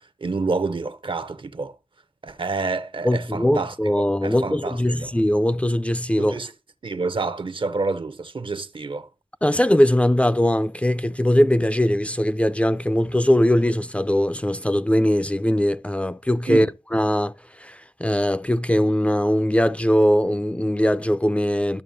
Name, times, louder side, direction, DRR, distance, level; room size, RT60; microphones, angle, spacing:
voice 1, 0.0-1.7 2.2-5.1 6.2-6.5 6.8-9.1 16.5-16.7, right 3 dB, 65° right, 0.6 m, -28 dB
voice 2, 3.0-6.4 9.4-16.7 16.9-17.3 17.6-21.8, equal, 15° left, 0.4 m, -20 dB
12.5 x 6.4 x 2.7 m
wide cardioid pair, 45°, 9 cm